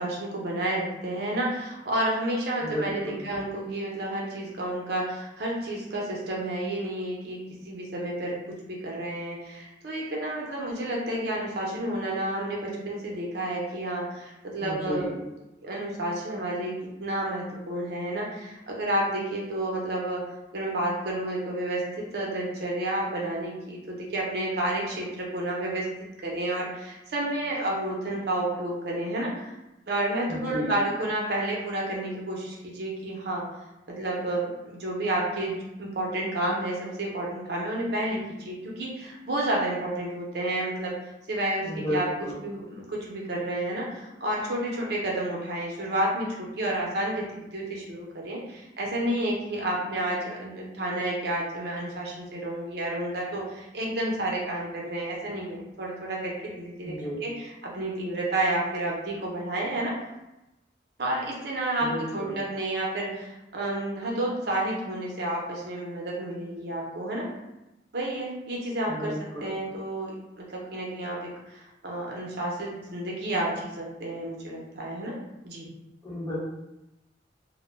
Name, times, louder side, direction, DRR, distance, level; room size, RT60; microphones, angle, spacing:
voice 1, 0.0-8.4 8.7-15.0 15.6-20.2 20.5-25.9 26.2-29.5 29.9-33.5 33.9-41.0 41.3-42.1 42.4-56.9 57.2-59.9 61.0-67.3 67.9-69.1 69.4-75.1 75.4-75.7, right 1 dB, 60° right, -3 dB, 0.6 m, -30 dB
voice 2, 2.6-3.2 14.6-15.2 30.3-30.8 41.6-42.4 56.8-57.2 61.8-62.4 68.9-69.6 76.0-76.4, equal, 20° left, -9 dB, 1.0 m, -33 dB
2.1 x 2.1 x 3.1 m, 0.94 s
head